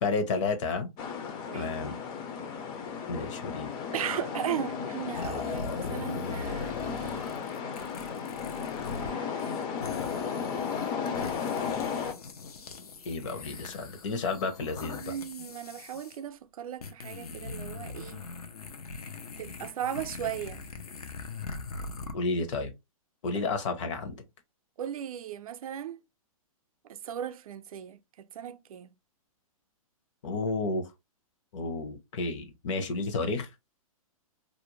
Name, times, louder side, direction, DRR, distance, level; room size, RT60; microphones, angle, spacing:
voice 1, 0.0-0.9 1.5-1.9 3.1-3.7 13.1-15.1 22.1-22.7 23.2-24.2 30.2-30.8 31.5-33.5, left 3 dB, 55° left, 0.8 m, -31 dB
sound 1, 1.0-12.1, left 6 dB, 25° left, 0.4 m, -34 dB
voice 2, 3.9-7.3 9.0-10.7 14.9-18.3 19.4-20.6 23.3-23.5 24.8-26.0 26.8-28.9, right 10 dB, 75° right, 0.4 m, -37 dB
Vocal squish noises, 5.1-9.1 9.4-16.2 16.8-22.1, left 4 dB, 90° left, 0.6 m, -41 dB
2.5 x 2.0 x 3.0 m
hypercardioid pair, 140°, 19 cm